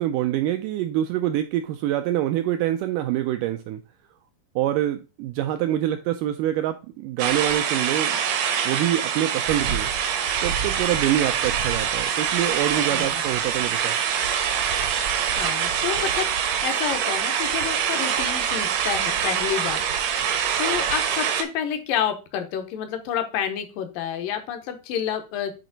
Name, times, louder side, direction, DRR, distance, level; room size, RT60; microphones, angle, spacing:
voice 1, 0.0-3.8 4.6-8.2 8.7-9.9 10.4-14.0, right 12 dB, 85° right, 1.9 m, -25 dB
sound 1, 7.2-21.4, right 8 dB, 70° right, 1.7 m, -24 dB
voice 2, 12.7-13.2 15.4-16.3 16.6-19.8 20.6-25.6, left 9 dB, 75° left, 2.5 m, -29 dB
9.4 x 4.3 x 4.0 m
omnidirectional pair, 4.2 m